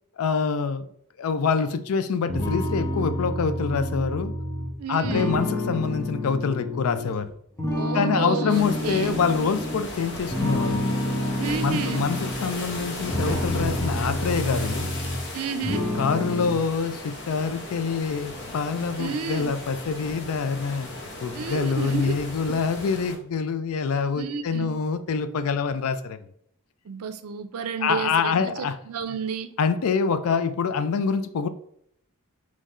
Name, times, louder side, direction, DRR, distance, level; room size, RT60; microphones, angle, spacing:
voice 1, 0.2-0.9 1.2-4.3 4.9-7.3 7.9-11.0 11.6-14.9 16.0-20.9 21.2-26.2 27.8-28.8 29.6-31.5, left 5 dB, 70° left, 12 dB, 0.4 m, -26 dB
sound 1, 2.3-7.2 7.6-9.9 10.3-12.4 12.9-15.3 15.6-16.6, left 1 dB, 15° left, 0.8 m, -28 dB
voice 2, 4.8-5.4 7.7-9.2 11.4-12.1 15.3-15.9 19.0-19.5 21.3-22.1 22.4-22.5 24.1-24.8 26.8-29.5, right 6 dB, 80° right, 10 dB, 0.4 m, -31 dB
sound 2, 8.5-23.2, left 2 dB, 55° left, 0.9 m, -36 dB
3.6 x 3.1 x 4.1 m, 0.69 s
head